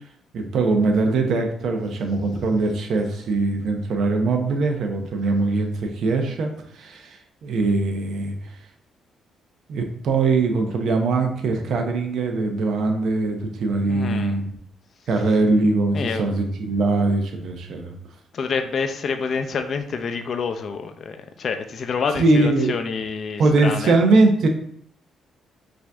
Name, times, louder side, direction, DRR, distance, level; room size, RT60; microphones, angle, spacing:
voice 1, 0.3-6.5 6.7-8.3 9.7-14.5 15.1-17.9 22.2-22.7 23.4-24.5, right 3 dB, 70° right, 0.8 m, -21 dB
voice 2, 13.9-14.4 15.9-16.3 18.3-24.0, left 5 dB, 55° left, 0.6 m, -27 dB
5.1 x 2.7 x 3.4 m
cardioid pair, 90°, 0 cm